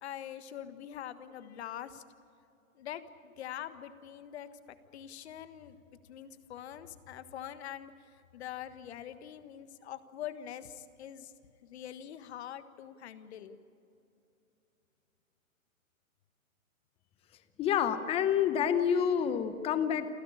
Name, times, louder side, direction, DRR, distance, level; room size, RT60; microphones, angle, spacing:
voice 1, 0.0-2.0 2.7-4.5 4.9-11.3 11.6-13.6, left 10 dB, 50° left, 12 dB, 1.6 m, -44 dB
voice 2, 17.6-20.1, left 8 dB, 15° left, 12 dB, 0.9 m, -28 dB
28.0 x 15.0 x 8.6 m, 2.8 s
hypercardioid pair, 145°, 42 cm